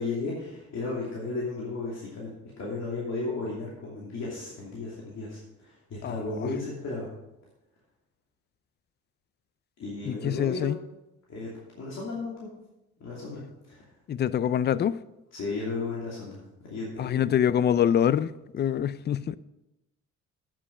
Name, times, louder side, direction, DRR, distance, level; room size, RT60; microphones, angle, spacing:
voice 1, 0.0-2.3 2.6-7.1 9.8-10.7 11.3-12.5 13.0-13.8 15.3-16.4 16.7-17.3, left 3 dB, 60° left, 2.8 m, -34 dB
voice 2, 6.0-6.5 10.0-10.8 14.1-15.0 17.0-19.4, left 9 dB, 35° left, 0.4 m, -25 dB
8.6 x 7.6 x 5.2 m
cardioid pair, 90°, 30 cm